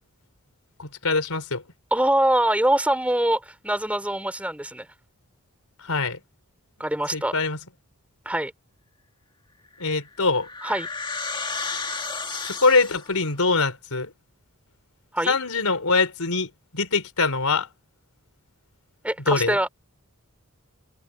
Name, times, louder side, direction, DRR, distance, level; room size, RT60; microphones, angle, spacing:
voice 1, 0.8-1.6 5.8-6.2 7.1-7.6 9.8-10.5 12.4-14.1 15.3-17.7 19.3-19.6, left 3 dB, 85° left, 3.9 m, -23 dB
voice 2, 1.9-4.9 6.8-7.3 8.2-8.5 10.6-10.9 15.1-15.3 19.0-19.7, right 1 dB, 5° right, 4.5 m, -23 dB
sound 1, 9.8-13.2, left 4 dB, 20° left, 1.7 m, -32 dB
head